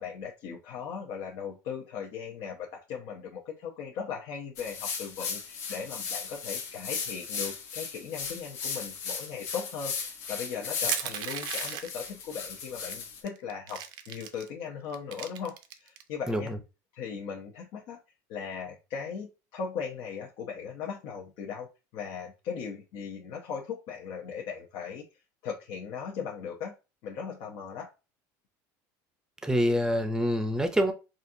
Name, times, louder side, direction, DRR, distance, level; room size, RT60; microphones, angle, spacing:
voice 1, 0.0-16.5 16.9-18.0 18.3-25.0 25.4-26.7 27.0-27.9, left 6 dB, 65° left, -1 dB, 0.8 m, -38 dB
sound 1, 4.6-13.2, left 6 dB, 85° left, 1.1 m, -36 dB
Crushing, 10.9-12.1 12.9-13.0 13.3-14.5 14.9-16.0, right 10 dB, 60° right, 0.5 m, -35 dB
voice 2, 16.3-16.6 29.4-30.9, equal, 5° right, 7 dB, 0.6 m, -26 dB
4.1 x 2.5 x 2.7 m, 0.29 s
supercardioid pair, 120°, 9 cm